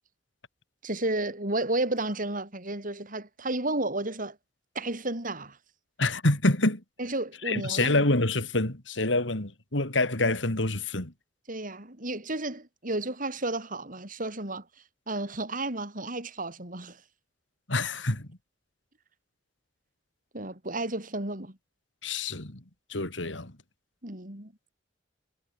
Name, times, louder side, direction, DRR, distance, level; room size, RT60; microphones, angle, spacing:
voice 1, 0.8-4.4 4.7-5.6 7.0-8.0 11.5-14.6 15.1-17.0 20.3-21.6 24.0-24.5, right 2 dB, 45° right, 6.5 m, -32 dB
voice 2, 6.0-6.8 7.5-11.1 17.7-18.3 22.0-22.6 22.9-23.5, left 2 dB, 80° left, 3.8 m, -26 dB
head